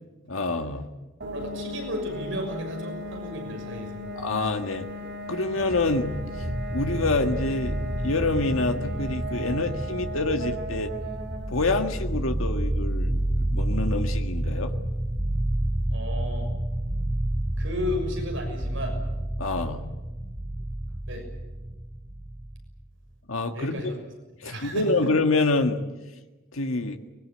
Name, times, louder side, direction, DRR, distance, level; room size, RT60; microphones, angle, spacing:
voice 1, 0.3-0.9 4.2-4.9 5.3-6.1 6.7-7.8 8.0-10.9 11.5-14.7 19.4-19.8 20.2-20.3 23.3-23.8 24.4-25.8 26.5-27.0, left 2 dB, 90° left, 5 dB, 1.9 m, -26 dB
sound 1, 1.2-15.8, equal, 55° right, 2.4 m, -38 dB
voice 2, 1.3-4.1 15.9-16.5 17.6-19.0 21.1-21.3 23.5-23.9 24.4-24.9, left 1 dB, 70° right, 3 dB, 6.4 m, -33 dB
sound 2, 5.5-22.8, right 1 dB, 20° right, 2.6 m, -30 dB
24.0 x 21.0 x 8.7 m, 1.1 s
head